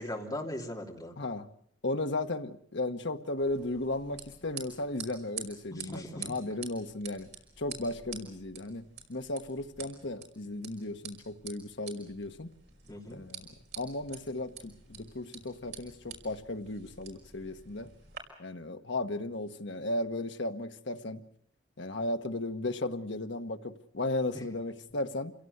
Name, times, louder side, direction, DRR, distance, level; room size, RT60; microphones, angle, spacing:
voice 1, 0.0-1.1 5.7-6.3 12.9-13.2, left 1 dB, 20° left, 1 dB, 3.0 m, -39 dB
voice 2, 1.2-1.5 1.8-7.3 7.6-8.8 9.1-12.5 13.1-13.5 13.8-17.9 18.4-21.2 21.8-25.3, left 2 dB, 70° left, 7 dB, 1.3 m, -35 dB
sound 1, 3.4-18.2, right 7 dB, 60° right, 5.5 m, -48 dB
27.0 x 17.0 x 8.0 m, 0.69 s
head